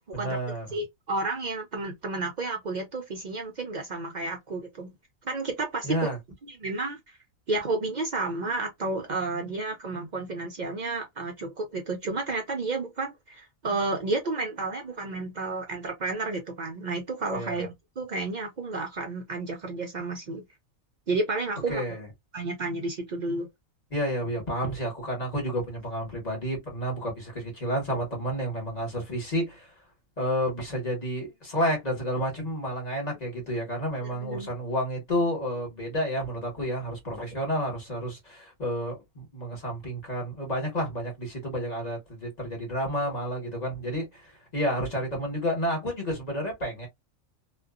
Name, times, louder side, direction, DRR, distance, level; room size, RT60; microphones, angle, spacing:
voice 1, 0.1-0.7 5.8-6.2 17.3-17.6 21.7-22.1 23.9-29.7 30.2-46.9, equal, 30° left, 1.2 m, -30 dB
voice 2, 0.7-4.9 5.2-6.1 6.5-7.2 7.5-17.7 18.0-20.4 21.1-21.8 22.3-23.5 34.1-34.6, right 3 dB, 65° right, 0.4 m, -31 dB
2.5 x 2.2 x 2.3 m
omnidirectional pair, 1.4 m